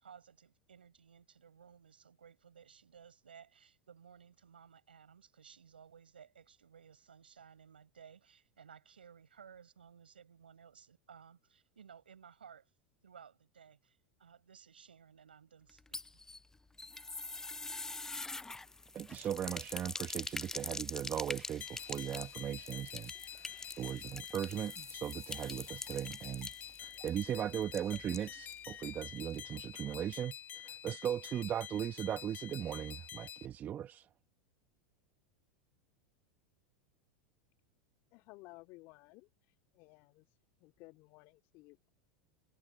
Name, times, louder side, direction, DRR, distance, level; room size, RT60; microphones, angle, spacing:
voice 1, 0.0-12.7 13.0-16.2, right 7 dB, 85° right, 6.8 m, -58 dB
sound 1, 15.7-28.7 28.9-29.0 29.3-29.4, left 3 dB, 10° left, 0.6 m, -45 dB
voice 2, 18.9-26.5 26.8-34.1, right 10 dB, 35° right, 1.2 m, -38 dB
sound 2, 21.6-33.5, left 10 dB, 35° left, 1.3 m, -48 dB
voice 3, 38.1-39.3 39.7-40.3 40.6-41.9, left 23 dB, 55° left, 2.3 m, -56 dB
hypercardioid pair, 95°, 5 cm